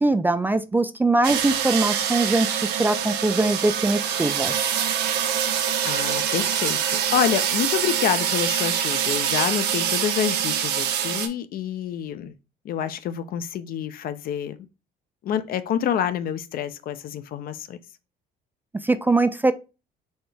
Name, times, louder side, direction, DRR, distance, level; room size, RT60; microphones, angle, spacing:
voice 1, 0.0-4.5 18.8-19.5, right 2 dB, 10° right, 0.3 m, -22 dB
sound 1, 1.2-11.3, right 9 dB, 80° right, 0.8 m, -25 dB
voice 2, 5.8-12.3 12.6-14.6 15.2-17.8, left 9 dB, 60° left, 0.5 m, -27 dB
4.3 x 3.3 x 3.2 m
cardioid pair, 110°, 17 cm